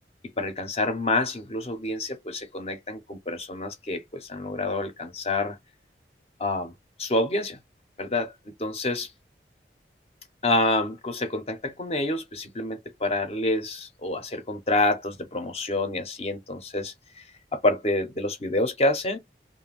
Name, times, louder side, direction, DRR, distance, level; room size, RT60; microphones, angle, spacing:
voice 1, 0.4-5.6 6.4-6.7 7.0-7.6 8.0-8.3 8.6-9.1 10.4-17.2 17.5-19.2, left 2 dB, 35° left, 0.6 m, -27 dB
2.4 x 2.2 x 3.3 m
head